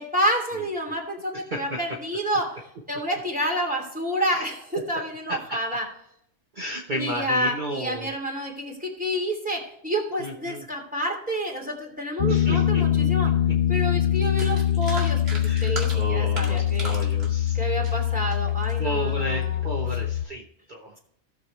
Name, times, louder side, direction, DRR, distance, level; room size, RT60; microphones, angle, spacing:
voice 1, 0.0-2.6 2.9-5.9 6.9-13.3 13.7-16.9 17.5-20.0, equal, 5° right, 0 dB, 2.9 m, -29 dB
voice 2, 1.3-1.8 4.3-4.4 5.3-5.6 6.5-8.1 10.2-10.6 12.3-13.6 13.9-14.0 15.4-18.0 18.8-20.4 20.7-20.9, right 1 dB, 40° right, 0 dB, 1.3 m, -33 dB
Piano, 12.2-20.3, left 11 dB, 55° left, 0.7 m, -23 dB
sound 1, 13.8-13.9 14.2-18.8 19.3-19.6, right 1 dB, 55° right, 2.5 m, -38 dB
17.0 x 7.0 x 3.3 m, 0.72 s
omnidirectional pair, 1.2 m